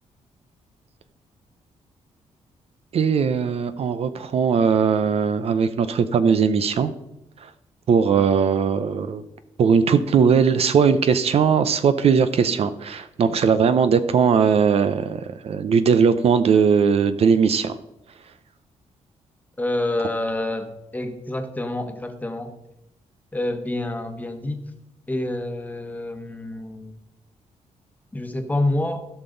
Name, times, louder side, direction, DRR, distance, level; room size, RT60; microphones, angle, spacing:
voice 1, 2.9-6.9 7.4-7.5 7.9-9.2 9.6-17.8, right 6 dB, 55° right, 12 dB, 0.6 m, -19 dB
voice 2, 19.6-22.5 23.3-24.6 25.1-26.9 28.1-29.1, left 1 dB, 15° left, 6 dB, 1.2 m, -27 dB
16.5 x 5.9 x 3.9 m, 0.87 s
cardioid pair, 115°, 12 cm